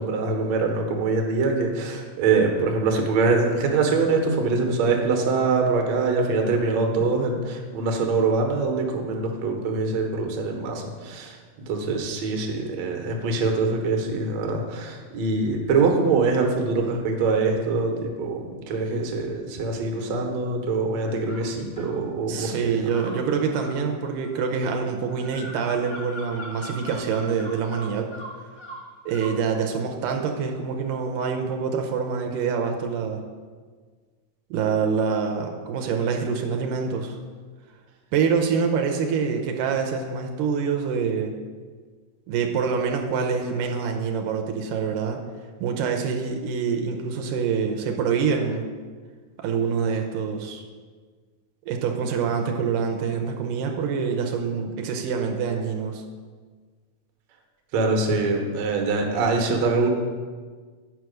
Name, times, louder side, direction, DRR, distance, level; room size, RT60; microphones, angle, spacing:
voice 1, 0.0-11.4 11.7-22.9 57.7-59.9, right 3 dB, 65° right, 2 dB, 2.1 m, -24 dB
voice 2, 7.0-7.4 22.3-28.1 29.1-33.2 34.5-37.2 38.1-41.4 42.3-45.2 45.6-48.6 49.4-50.6 51.7-56.0, right 6 dB, 85° right, 3 dB, 2.3 m, -26 dB
sound 1, 21.3-22.0 22.9-29.4, equal, 60° left, 0.4 m, -41 dB
9.0 x 4.7 x 6.3 m, 1.5 s
omnidirectional pair, 3.7 m